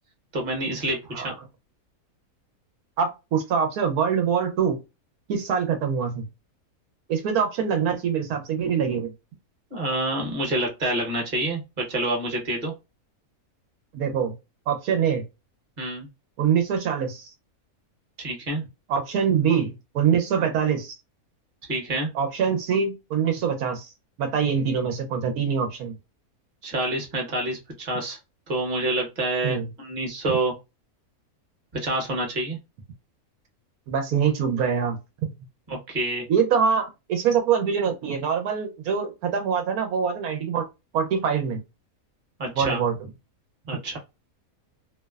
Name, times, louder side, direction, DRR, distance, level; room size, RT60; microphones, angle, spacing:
voice 1, 0.3-1.3 9.7-12.7 15.8-16.1 18.2-18.6 20.4-20.5 21.7-22.1 26.6-28.2 28.5-30.5 31.7-32.6 35.7-36.2 42.4-42.8 43.7-44.0, right 1 dB, 35° right, 1.0 m, -27 dB
voice 2, 3.0-4.8 5.3-6.2 7.1-9.1 13.9-14.3 14.7-15.2 16.4-17.3 18.9-21.0 22.1-23.9 24.2-25.9 29.4-29.7 33.9-35.3 36.3-40.6 40.9-41.6 42.6-42.9, right 7 dB, 85° right, 1.1 m, -24 dB
2.8 x 2.0 x 2.2 m
omnidirectional pair, 1.5 m